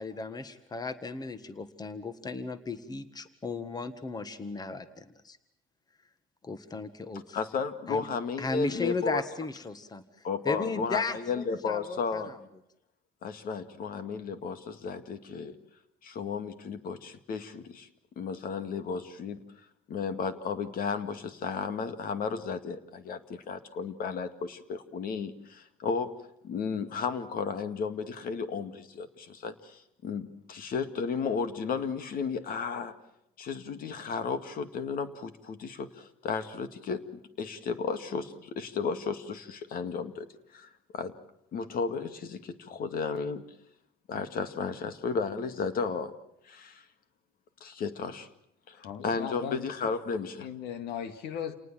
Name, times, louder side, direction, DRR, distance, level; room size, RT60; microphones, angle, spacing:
voice 1, 0.0-5.4 6.4-7.4 7.9-8.1 8.4-12.4, left 4 dB, 25° left, 1.7 m, -36 dB
voice 2, 7.3-9.2 10.2-12.3 13.2-15.6 16.0-17.9 18.2-19.4 19.9-26.1 26.4-32.9 33.4-41.1 41.5-43.4 44.1-46.1 46.4-46.8 47.6-48.3 48.7-48.8 49.0-50.5, left 5 dB, 60° left, 2.2 m, -34 dB
voice 3, 48.7-49.9 50.4-51.5, left 8 dB, 80° left, 2.0 m, -38 dB
29.0 x 19.0 x 7.6 m
cardioid pair, 110°, 17 cm